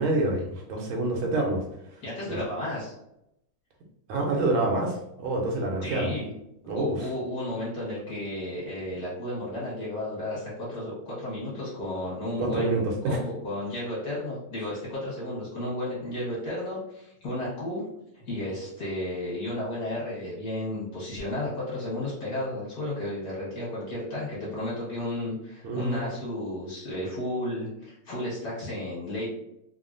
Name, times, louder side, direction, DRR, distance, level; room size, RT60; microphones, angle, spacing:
voice 1, 0.0-1.6 2.3-2.4 4.1-6.1 6.7-7.0 12.4-13.2 25.6-26.0, right 2 dB, 85° right, 0 dB, 1.5 m, -27 dB
voice 2, 2.0-2.9 5.8-6.3 6.7-17.9 18.2-29.3, left 1 dB, 50° left, -6 dB, 1.5 m, -33 dB
3.5 x 2.0 x 2.5 m, 0.80 s
omnidirectional pair, 2.3 m